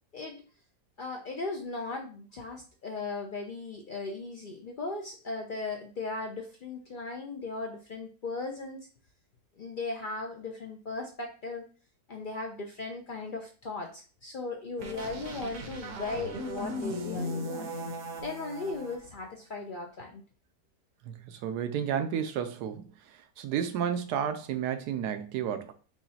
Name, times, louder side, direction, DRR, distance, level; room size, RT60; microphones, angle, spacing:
voice 1, 1.0-8.9 9.6-11.6 12.1-17.7 18.2-20.2, left 3 dB, 70° left, 0.4 m, -37 dB
sound 1, 14.8-19.0, equal, 60° right, 1.0 m, -37 dB
voice 2, 21.1-22.9 23.4-25.7, right 8 dB, 85° right, 1.2 m, -31 dB
4.9 x 3.1 x 2.7 m
omnidirectional pair, 1.7 m